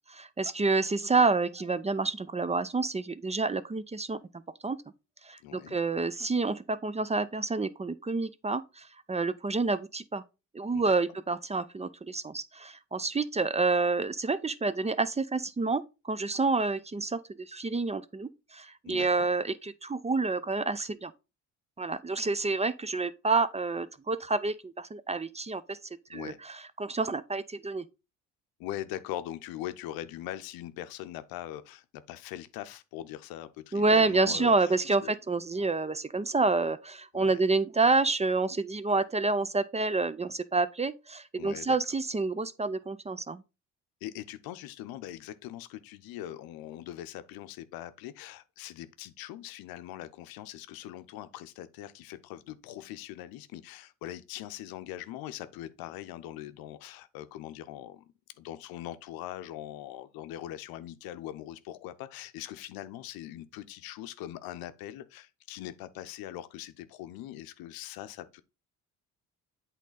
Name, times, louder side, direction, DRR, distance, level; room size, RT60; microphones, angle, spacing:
voice 1, 0.1-4.2 4.6-4.8 5.2-10.2 10.5-21.1 21.8-25.8 26.1-27.8 33.7-43.4, right 3 dB, 20° right, 0.5 m, -28 dB
voice 2, 5.4-5.8 10.7-10.9 18.8-19.1 26.1-26.4 28.6-34.8 35.0-35.1 35.6-35.7 37.1-37.4 41.4-41.8 44.0-58.1 58.4-68.4, left 13 dB, 75° left, 0.7 m, -41 dB
8.2 x 3.8 x 3.9 m
hypercardioid pair, 55°, 36 cm